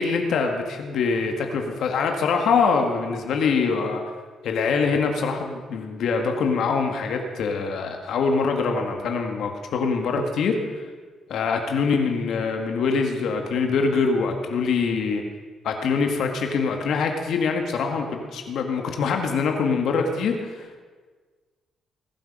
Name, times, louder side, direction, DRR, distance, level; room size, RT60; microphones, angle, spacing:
voice 1, 0.0-4.0 4.4-10.6 11.3-15.2 15.6-20.8, left 5 dB, 70° left, 4 dB, 1.8 m, -24 dB
20.0 x 8.1 x 5.4 m, 1.5 s
cardioid pair, 90°, 0 cm